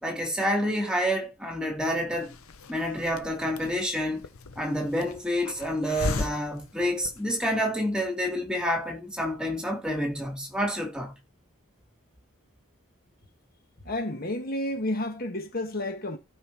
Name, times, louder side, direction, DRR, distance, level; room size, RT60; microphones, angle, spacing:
voice 1, 0.0-2.3 2.7-4.3 4.6-11.1, equal, 5° right, 2.6 m, -28 dB
Hiss, 2.1-7.6, left 3 dB, 80° left, 0.8 m, -37 dB
voice 2, 13.8-16.2, left 1 dB, 45° left, 1.5 m, -31 dB
16.0 x 5.6 x 2.9 m
head